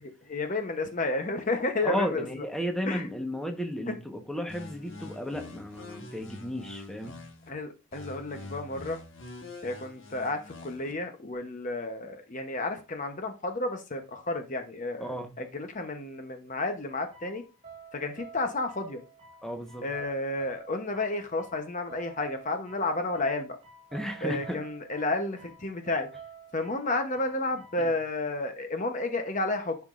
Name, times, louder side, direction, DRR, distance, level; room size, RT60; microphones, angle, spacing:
voice 1, 0.0-2.3 2.9-3.1 7.5-9.0 9.6-17.4 17.9-19.0 19.8-23.6 24.2-26.1 26.5-29.8, left 2 dB, 35° left, 0.9 m, -31 dB
voice 2, 1.8-7.2 15.0-15.3 19.4-19.9 23.9-24.6 27.8-27.9, equal, 5° left, 1.1 m, -34 dB
sound 1, 4.5-7.5 7.9-10.9, left 2 dB, 60° left, 1.6 m, -45 dB
sound 2, 17.0-27.8, right 5 dB, 30° right, 2.4 m, -50 dB
10.5 x 5.8 x 2.5 m
head